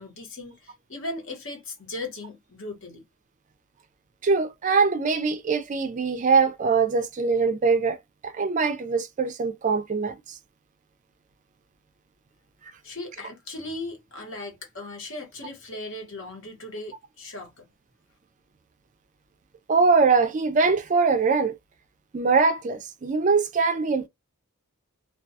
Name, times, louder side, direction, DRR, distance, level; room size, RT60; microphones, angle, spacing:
voice 1, 0.0-3.0 12.8-17.7, left 2 dB, 60° left, 1.0 m, -37 dB
voice 2, 4.2-8.0 8.2-10.1 19.7-21.5 22.1-24.1, right 4 dB, 35° right, 0.3 m, -22 dB
2.3 x 2.2 x 2.6 m
head